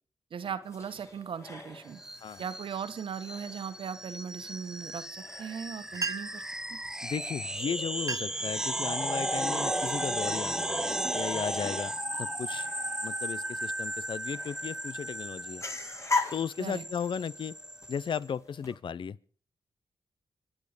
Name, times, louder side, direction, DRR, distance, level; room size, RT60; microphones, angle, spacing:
voice 1, 0.3-2.0 2.4-6.4 6.7-6.8 16.6-16.8, right 7 dB, 75° right, 1.5 m, -38 dB
sound 1, 0.6-18.7, left 4 dB, 35° left, 3.6 m, -42 dB
sound 2, 2.0-18.2, right 1 dB, 5° right, 0.8 m, -35 dB
sound 3, 5.7-5.8 5.9-6.5 7.4-7.5 7.9-8.5 9.0-9.3 10.0-10.2 10.8-12.0, right 4 dB, 40° right, 0.8 m, -38 dB
voice 2, 7.0-11.9 12.2-12.7 13.0-15.6 16.3-17.6 17.9-19.2, left 7 dB, 65° left, 0.7 m, -35 dB
26.0 x 9.8 x 5.1 m
cardioid pair, 60°, 9 cm